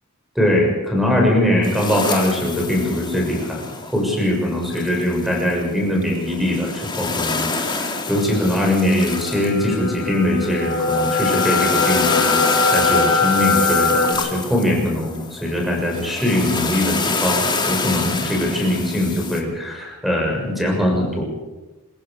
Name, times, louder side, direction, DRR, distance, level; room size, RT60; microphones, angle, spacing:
voice 1, 0.4-3.6 3.9-12.4 12.7-21.2, left 1 dB, ahead, 0 dB, 6.9 m, -21 dB
sound 1, 1.6-19.4, left 4 dB, 20° left, 2.4 m, -27 dB
sound 2, 7.3-14.1, left 4 dB, 35° left, 6.7 m, -22 dB
27.0 x 16.0 x 6.9 m, 1.1 s
head